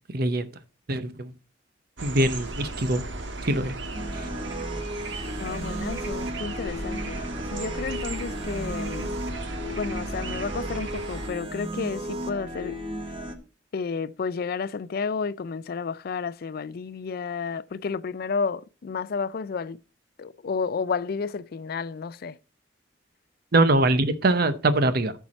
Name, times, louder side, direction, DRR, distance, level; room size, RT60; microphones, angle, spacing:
voice 1, 0.1-0.5 0.9-1.3 2.0-3.1 3.5-3.7 4.1-4.3 23.5-25.1, right 2 dB, 55° right, 0.8 m, -23 dB
sound 1, 2.0-11.3, right 2 dB, 75° right, 1.3 m, -35 dB
sound 2, 3.9-13.4, right 1 dB, 30° right, 1.1 m, -35 dB
voice 2, 5.4-7.2 7.5-9.2 9.8-12.8 13.7-19.8 20.2-22.4, left 5 dB, 50° left, 0.4 m, -31 dB
14.0 x 4.6 x 4.2 m
head